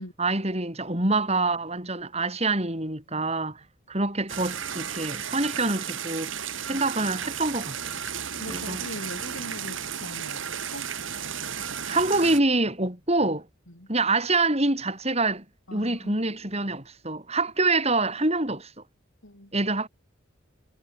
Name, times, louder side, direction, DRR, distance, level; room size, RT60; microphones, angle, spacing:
voice 1, 0.2-3.6 3.9-8.0 8.5-8.8 11.9-13.5 13.9-15.4 15.7-18.7 19.5-19.9, right 2 dB, 30° right, 6.5 m, -26 dB
sound 1, 4.3-12.4, right 8 dB, 75° right, 2.8 m, -34 dB
voice 2, 8.4-10.5 10.7-10.9 13.7-13.9 15.7-16.2 19.2-19.6, left 1 dB, 80° left, 7.6 m, -41 dB
head